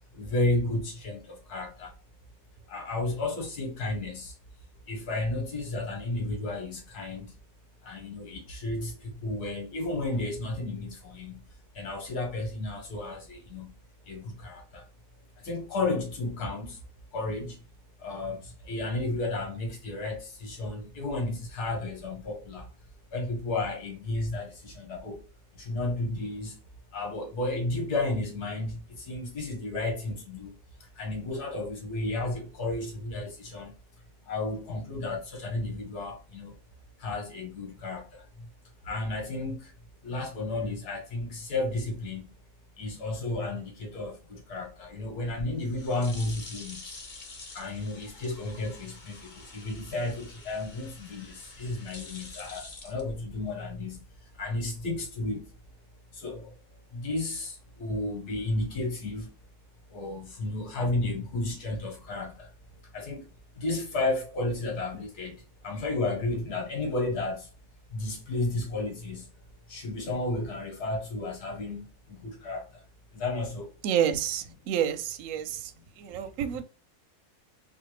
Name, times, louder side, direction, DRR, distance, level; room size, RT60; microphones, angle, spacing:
voice 1, 0.1-1.9 2.7-4.3 4.9-7.3 7.8-11.4 11.8-13.7 14.1-14.8 15.4-16.8 17.1-17.6 18.0-22.7 23.1-25.2 25.6-26.5 26.9-30.5 31.0-33.7 34.3-36.5 37.0-38.1 38.4-38.5 38.8-39.7 40.0-42.3 42.8-46.9 47.6-54.1 54.4-55.4 56.1-56.5 56.9-59.3 59.9-62.5 62.9-63.2 63.6-67.5 67.9-69.3 69.7-72.7 73.1-73.7, left 2 dB, 80° left, 1.8 m, -32 dB
sound 1, 45.2-53.7, left 3 dB, 40° left, 0.7 m, -47 dB
voice 2, 73.8-75.7 76.0-76.6, right 9 dB, 70° right, 0.9 m, -29 dB
4.2 x 2.4 x 3.1 m
omnidirectional pair, 1.7 m